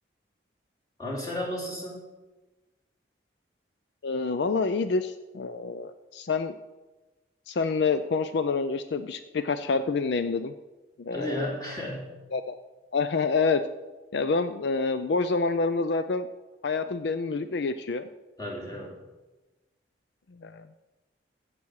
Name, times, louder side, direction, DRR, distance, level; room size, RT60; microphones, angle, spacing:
voice 1, 1.0-2.0 11.1-12.1 18.4-19.0, left 1 dB, 20° left, -3 dB, 2.8 m, -33 dB
voice 2, 4.0-6.5 7.5-10.5 11.0-11.5 12.3-12.6 12.9-13.6 14.1-16.3 16.6-18.1 20.4-20.7, left 4 dB, 70° left, 10 dB, 0.4 m, -27 dB
16.0 x 6.9 x 4.8 m, 1.1 s
head